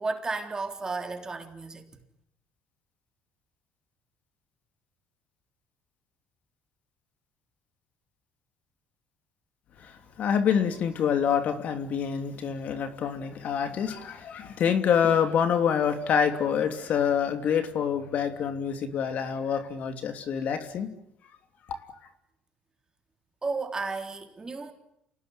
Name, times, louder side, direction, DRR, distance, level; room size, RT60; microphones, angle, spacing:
voice 1, 0.0-1.9 23.4-24.7, right 3 dB, 25° right, 3.8 m, -33 dB
voice 2, 9.8-20.9, left 7 dB, 55° left, 3.0 m, -26 dB
28.0 x 18.5 x 9.7 m
cardioid pair, 95°, 3 cm